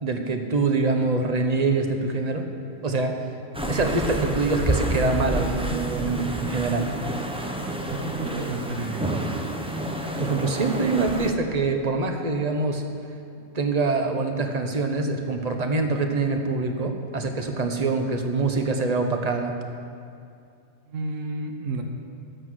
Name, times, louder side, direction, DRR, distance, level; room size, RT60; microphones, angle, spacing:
voice 1, 0.0-2.5 2.8-3.2 3.7-6.9 10.2-12.8 13.5-19.5, right 3 dB, 35° right, 4 dB, 1.0 m, -24 dB
sound 1, 3.5-11.3, right 1 dB, 5° right, 0.5 m, -29 dB
voice 2, 7.9-9.2 20.9-21.8, right 2 dB, 80° right, 4 dB, 1.3 m, -31 dB
13.0 x 8.1 x 6.3 m, 2.5 s
omnidirectional pair, 1.3 m